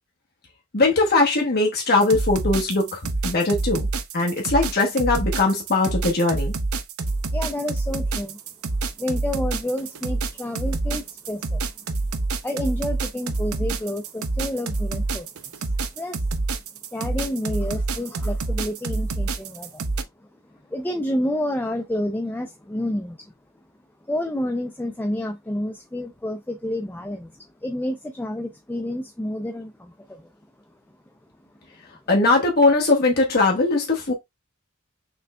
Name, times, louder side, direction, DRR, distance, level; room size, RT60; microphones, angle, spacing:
voice 1, 0.7-3.9 4.1-6.5 32.1-34.1, left 3 dB, 45° left, 1.1 m, -20 dB
sound 1, 2.0-20.0, right 3 dB, 80° right, 0.6 m, -27 dB
voice 2, 7.3-8.4 9.0-11.6 12.4-15.3 15.5-15.6 16.0-16.2 16.9-19.8 20.7-23.3 24.1-27.3 27.6-30.3, left 1 dB, 10° left, 0.4 m, -29 dB
6.1 x 3.3 x 2.3 m
head